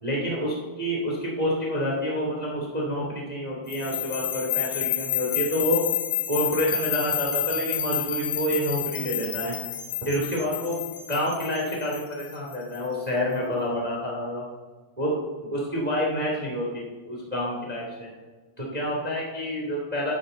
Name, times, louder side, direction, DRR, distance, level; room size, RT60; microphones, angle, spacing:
voice 1, 0.0-5.8 6.3-9.6 10.0-10.8 11.1-14.4 15.0-15.1 15.5-18.1 18.6-20.1, equal, 15° right, -3 dB, 1.6 m, -28 dB
sound 1, 3.7-12.8, left 12 dB, 85° left, 3.4 m, -30 dB
12.0 x 11.0 x 4.0 m, 1.4 s
omnidirectional pair, 5.1 m